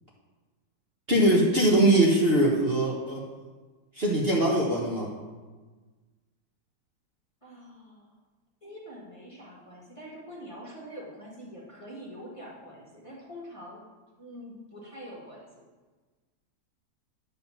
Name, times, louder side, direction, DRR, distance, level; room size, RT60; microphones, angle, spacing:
voice 1, 1.1-3.2 3.9-5.1, right 1 dB, 35° right, -4 dB, 1.4 m, -22 dB
voice 2, 7.4-8.1 8.6-13.8 14.2-15.5, equal, 20° left, -4 dB, 1.8 m, -44 dB
10.0 x 4.2 x 7.1 m, 1.3 s
omnidirectional pair, 1.9 m